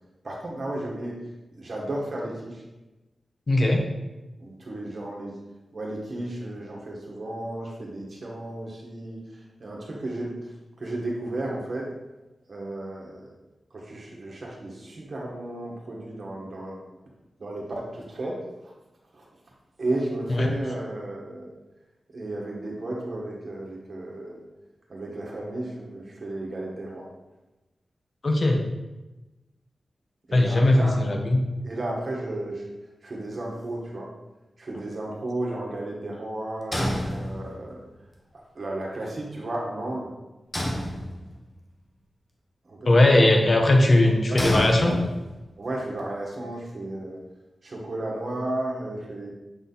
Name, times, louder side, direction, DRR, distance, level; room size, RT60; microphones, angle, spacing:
voice 1, 0.2-1.2 1.5-2.6 4.4-5.4 5.7-10.5 10.8-11.9 12.5-13.3 13.7-16.8 17.4-18.4 19.1-19.2 19.8-21.5 22.1-24.4 24.9-27.1 30.3-30.9 31.6-32.6 33.0-34.1 34.6-37.8 38.3-40.1 42.6-43.4 44.0-45.0 45.6-47.2 47.6-49.3, right 1 dB, 50° right, -3 dB, 1.7 m, -33 dB
voice 2, 3.5-3.8 20.3-20.5 28.2-28.6 30.3-31.4 42.8-44.9, left 1 dB, 45° left, 2 dB, 0.9 m, -19 dB
sound 1, 36.7-37.8 40.5-41.6 44.4-45.5, equal, 20° left, 1.0 m, -29 dB
7.6 x 3.9 x 4.1 m, 1.0 s
wide cardioid pair, 105°, 0 cm